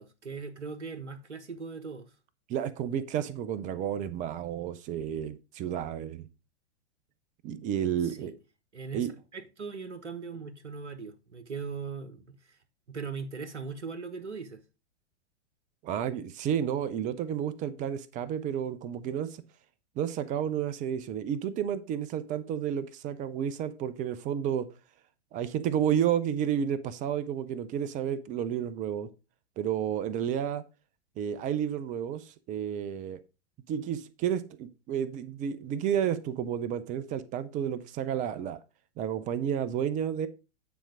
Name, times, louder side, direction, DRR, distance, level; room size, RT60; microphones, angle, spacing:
voice 1, 0.0-2.1 8.0-8.3 8.7-12.6 12.9-14.6, right 5 dB, 80° right, 1.0 m, -40 dB
voice 2, 2.5-6.3 7.4-8.3 8.9-9.1 15.8-19.4 20.0-24.7 25.3-29.1 29.6-30.6 31.2-33.2 33.7-38.6 39.0-40.3, right 9 dB, 20° right, 0.6 m, -31 dB
9.2 x 4.4 x 4.9 m
figure-of-eight pair, 105°, 35 cm